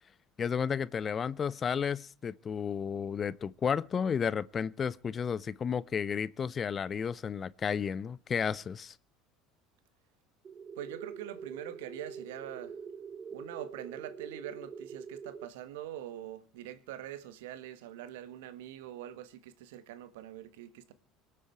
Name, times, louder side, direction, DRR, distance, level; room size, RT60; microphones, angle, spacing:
voice 1, 0.4-8.9, left 7 dB, 35° left, 0.7 m, -32 dB
sound 1, 10.5-15.5, right 6 dB, 35° right, 1.2 m, -45 dB
voice 2, 10.8-12.7 13.3-20.9, right 12 dB, 75° right, 1.5 m, -44 dB
24.5 x 8.6 x 4.6 m
hypercardioid pair, 75°, 0 cm